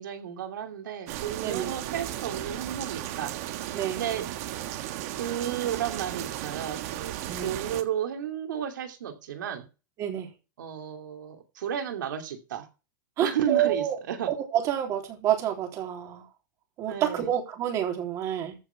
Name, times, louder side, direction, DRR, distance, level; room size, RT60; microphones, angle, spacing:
voice 1, 0.0-3.3 3.6-4.3 5.1-7.1 7.4-9.7 10.6-12.7 13.2-14.3 16.9-17.3, right 9 dB, 85° right, 2.8 m, -33 dB
sound 1, 1.1-7.8, right 13 dB, 50° right, 1.5 m, -35 dB
voice 2, 10.0-10.3 13.2-14.0 14.3-16.2 16.8-18.6, right 10 dB, 30° right, 3.4 m, -28 dB
14.5 x 6.1 x 5.8 m
supercardioid pair, 155°, 10 cm